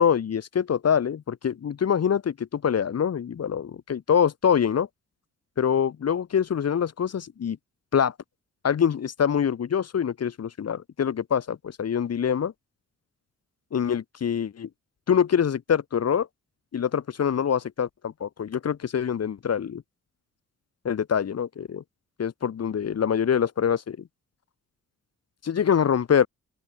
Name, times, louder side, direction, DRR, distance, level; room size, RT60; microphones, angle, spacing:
voice 1, 0.0-4.9 5.6-7.6 7.9-8.1 8.6-12.5 13.7-14.7 15.1-16.3 16.7-19.8 20.8-21.8 22.2-24.0 25.4-26.3, left 8 dB, 50° left, 1.6 m, -24 dB
open air
cardioid pair, 95°, 32 cm